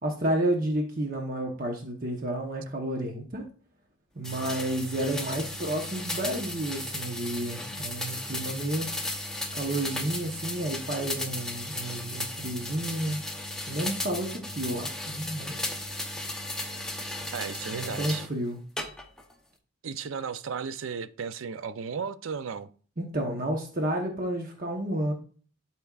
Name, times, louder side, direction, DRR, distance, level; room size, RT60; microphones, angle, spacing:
voice 1, 0.0-3.5 4.2-8.9 9.5-13.2 13.7-15.6 17.7-18.6 23.0-25.1, right 1 dB, 40° right, 0.9 m, -31 dB
sound 1, 4.2-18.3 18.8-19.3, left 1 dB, 5° left, 0.7 m, -35 dB
voice 2, 17.3-18.3 19.8-22.7, right 6 dB, 65° right, 0.5 m, -35 dB
12.0 x 4.4 x 2.4 m
head